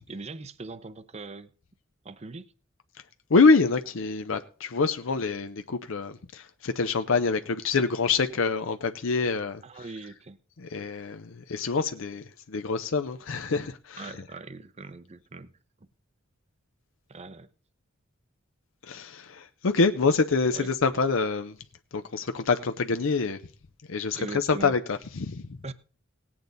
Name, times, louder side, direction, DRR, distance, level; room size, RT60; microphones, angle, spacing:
voice 1, 0.0-1.5 2.0-2.5 9.6-10.4 14.0-15.5 17.1-17.5 20.5-20.7 24.2-24.7 25.6-25.7, right 3 dB, 35° right, 0.7 m, -40 dB
voice 2, 3.3-9.6 10.6-14.1 18.8-21.5 21.9-23.4 23.9-25.5, left 4 dB, 70° left, 0.6 m, -26 dB
18.0 x 8.7 x 4.0 m
head